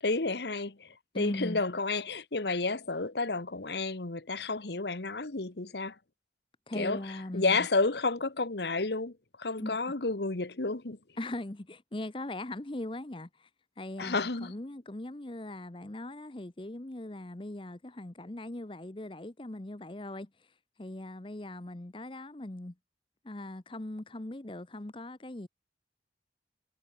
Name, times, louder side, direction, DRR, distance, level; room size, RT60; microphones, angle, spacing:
voice 1, 0.0-6.0 6.7-11.0 14.0-14.5, left 3 dB, 70° left, 1.4 m, -31 dB
voice 2, 1.1-1.6 6.7-7.6 9.6-9.8 11.2-13.5 13.8-20.3 20.8-22.7 23.2-25.5, left 1 dB, 30° left, 0.8 m, -40 dB
head